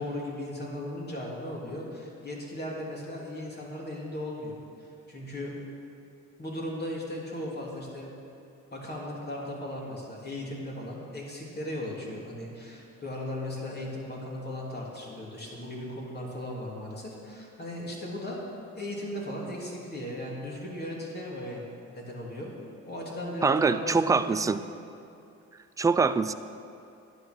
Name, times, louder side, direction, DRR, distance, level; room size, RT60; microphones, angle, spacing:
voice 1, 0.0-5.5 6.4-8.1 8.7-18.4 18.7-21.6 21.9-22.5 22.9-24.5, left 1 dB, 35° left, -3 dB, 3.2 m, -37 dB
voice 2, 23.4-24.6 25.8-26.3, right 4 dB, 10° right, 12 dB, 0.4 m, -24 dB
11.0 x 9.2 x 6.2 m, 2.6 s
cardioid pair, 90°, 30 cm